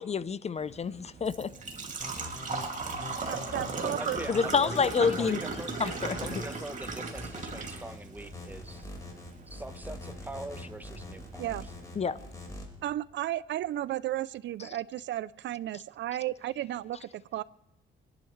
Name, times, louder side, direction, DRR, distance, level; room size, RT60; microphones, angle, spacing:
voice 1, 0.0-1.5 4.3-5.4 5.8-6.2 12.0-12.2, left 5 dB, 35° left, 0.5 m, -28 dB
Engine / Trickle dribble / Fill (with liquid), 0.6-12.5, right 4 dB, 40° right, 2.4 m, -39 dB
sound 1, 2.0-12.6, left 1 dB, 15° left, 4.7 m, -43 dB
voice 2, 3.3-4.2 11.4-11.7 12.8-17.4, right 13 dB, 65° right, 0.4 m, -34 dB
voice 3, 3.8-5.7 6.1-8.9 9.5-11.5, right 1 dB, 10° right, 1.0 m, -42 dB
27.0 x 11.0 x 3.2 m
cardioid pair, 90°, 20 cm